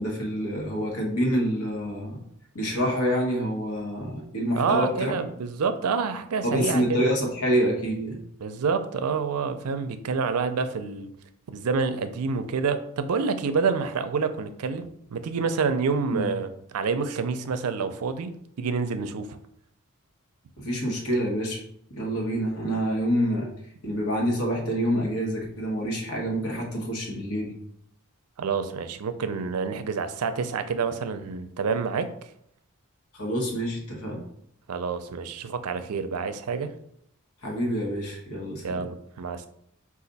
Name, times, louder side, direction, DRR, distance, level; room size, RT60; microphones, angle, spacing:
voice 1, 0.0-2.2 2.5-5.2 6.4-8.2 16.1-16.3 20.6-23.5 23.8-27.5 33.1-34.2 37.4-38.9, equal, 70° left, -1 dB, 1.3 m, -27 dB
voice 2, 4.6-7.0 8.4-11.1 11.5-19.4 28.4-32.1 34.7-36.7 38.6-39.5, right 5 dB, 75° right, 10 dB, 0.4 m, -28 dB
5.0 x 2.5 x 4.0 m, 0.71 s
head